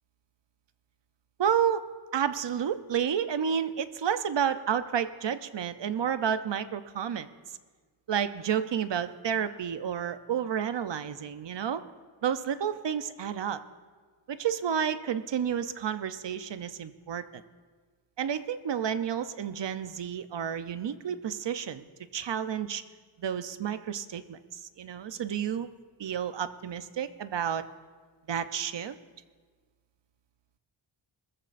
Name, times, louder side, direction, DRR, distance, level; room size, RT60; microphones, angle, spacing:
voice 1, 1.4-1.8 2.1-7.3 8.1-11.8 12.2-13.6 14.3-17.4 18.2-21.8 22.1-22.8 23.2-25.7 26.0-27.6 28.3-28.9, right 8 dB, 60° right, 11 dB, 0.7 m, -30 dB
21.0 x 14.5 x 2.6 m, 1.5 s
wide cardioid pair, 95°, 50 cm